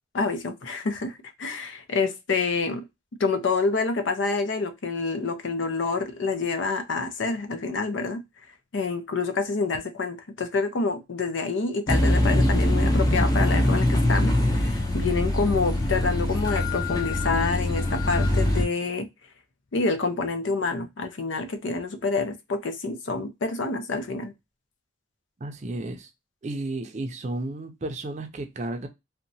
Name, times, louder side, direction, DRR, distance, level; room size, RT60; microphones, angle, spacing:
voice 1, 0.1-1.1 1.4-2.8 3.2-8.2 8.7-19.1 19.7-24.3, left 4 dB, 90° left, 0.5 m, -27 dB
sound 1, 11.9-18.6, left 1 dB, 20° left, 0.5 m, -23 dB
voice 2, 25.4-26.1 26.4-28.9, right 2 dB, 40° right, 0.5 m, -33 dB
2.8 x 2.1 x 2.6 m
head